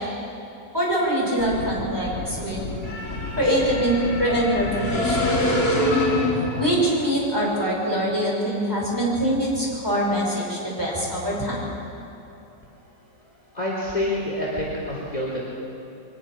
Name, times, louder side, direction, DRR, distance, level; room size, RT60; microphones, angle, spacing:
voice 1, 0.7-2.7 3.4-5.2 6.6-11.6, right 1 dB, 10° right, -5 dB, 5.9 m, -23 dB
sound 1, 1.4-6.9, left 1 dB, 55° left, 3.7 m, -25 dB
voice 2, 13.5-15.4, left 1 dB, 20° left, -5 dB, 3.6 m, -27 dB
23.0 x 20.0 x 6.1 m, 2.9 s
omnidirectional pair, 2.0 m